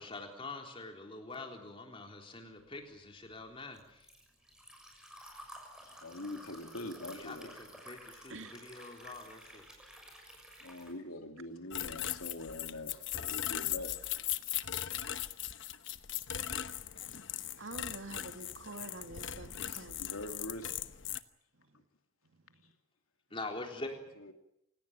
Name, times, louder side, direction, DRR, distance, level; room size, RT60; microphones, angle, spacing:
voice 1, 0.0-4.1 7.1-9.7 23.3-24.0, left 2 dB, 25° left, 3 dB, 3.8 m, -45 dB
Liquid, 2.7-10.9, equal, 5° right, 6.5 m, -53 dB
voice 2, 5.8-7.5 10.6-14.0 20.0-20.7 24.2-24.3, left 1 dB, 85° left, 5 dB, 2.9 m, -43 dB
sound 1, 11.7-21.2, left 11 dB, 60° left, 1.1 m, -39 dB
voice 3, 17.6-20.1 22.5-22.7, right 2 dB, 65° right, 7 dB, 2.2 m, -47 dB
28.5 x 17.5 x 9.0 m, 0.82 s
head